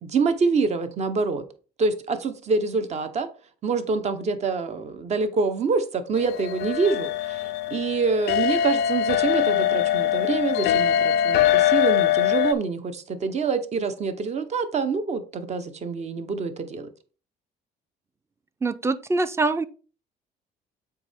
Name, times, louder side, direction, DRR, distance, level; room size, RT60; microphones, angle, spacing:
voice 1, 0.0-1.4 1.8-3.3 3.6-16.9, right 4 dB, 40° right, 0.9 m, -26 dB
sound 1, 6.2-12.5, left 10 dB, 85° left, 0.5 m, -22 dB
voice 2, 18.6-19.6, right 3 dB, 15° right, 0.5 m, -24 dB
6.9 x 4.6 x 3.5 m
cardioid pair, 110°, 17 cm